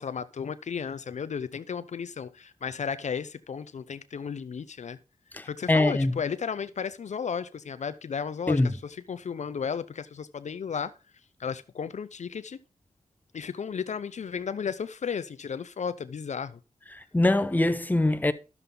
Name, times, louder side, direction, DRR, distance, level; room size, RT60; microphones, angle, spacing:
voice 1, 0.0-5.0 5.4-10.9 11.4-12.6 13.3-16.6, left 6 dB, 60° left, 0.5 m, -34 dB
voice 2, 5.3-6.1 8.5-8.7 17.1-18.3, left 2 dB, 15° left, 0.7 m, -23 dB
11.0 x 6.9 x 3.7 m
cardioid pair, 50°, 13 cm